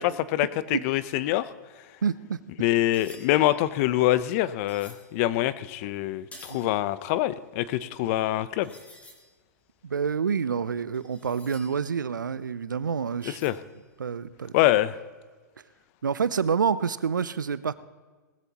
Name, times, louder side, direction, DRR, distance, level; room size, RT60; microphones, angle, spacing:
voice 1, 0.0-1.5 2.6-8.7 13.2-13.6 14.5-15.0, left 15 dB, 50° left, 15 dB, 0.7 m, -25 dB
voice 2, 2.0-2.4 6.6-6.7 9.8-13.4 14.0-14.5 16.0-17.7, right 6 dB, 90° right, 16 dB, 0.6 m, -27 dB
sound 1, 2.9-5.1 5.7-6.8 7.1-7.2 7.8-7.9 8.1-8.2 8.6-9.4 9.9-12.3 13.2-13.8 14.1-14.4, left 1 dB, 15° left, 2.9 m, -51 dB
19.5 x 15.0 x 3.0 m, 1.4 s
hypercardioid pair, 110°, 10 cm